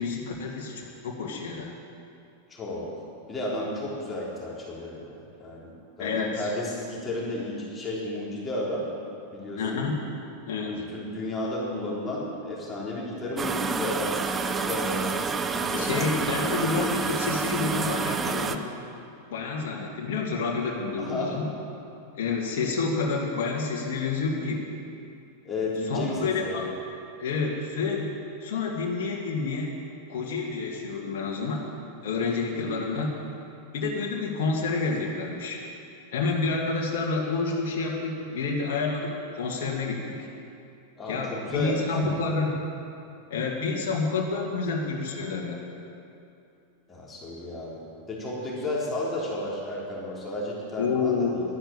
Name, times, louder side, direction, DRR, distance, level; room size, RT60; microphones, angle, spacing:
voice 1, 0.0-1.7 6.0-6.5 9.5-10.0 10.5-10.8 15.7-18.7 19.3-21.5 22.1-24.7 25.9-26.7 27.2-28.1 28.4-29.7 30.1-31.6 32.0-33.1 33.7-35.6 36.1-40.3 41.1-42.6 43.3-45.6 50.8-51.3, left 4 dB, 55° left, -1 dB, 2.2 m, -29 dB
voice 2, 2.5-2.9 3.3-8.8 9.3-9.8 10.7-14.2 14.5-15.2 15.6-16.5 21.0-21.4 25.4-26.6 32.5-32.8 41.0-42.3 46.9-47.8 48.1-51.4, left 1 dB, 15° left, -5 dB, 3.6 m, -33 dB
sound 1, 13.4-18.6, right 5 dB, 20° right, 0.7 m, -28 dB
12.0 x 10.0 x 8.7 m, 2.6 s
figure-of-eight pair, 90°, 0 cm